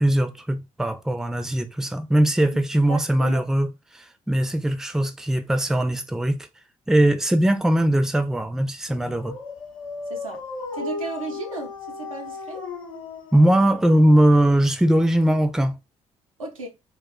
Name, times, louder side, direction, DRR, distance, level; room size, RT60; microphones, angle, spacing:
voice 1, 0.0-3.7 4.3-6.5 6.9-9.4 13.3-15.7, right 1 dB, 5° right, 0.4 m, -20 dB
voice 2, 2.9-3.4 10.1-10.4 10.7-12.6 16.4-16.7, right 3 dB, 90° right, 0.5 m, -34 dB
Dog, 8.9-14.6, left 4 dB, 80° left, 0.6 m, -36 dB
2.3 x 2.0 x 3.5 m
figure-of-eight pair, 45°, 17 cm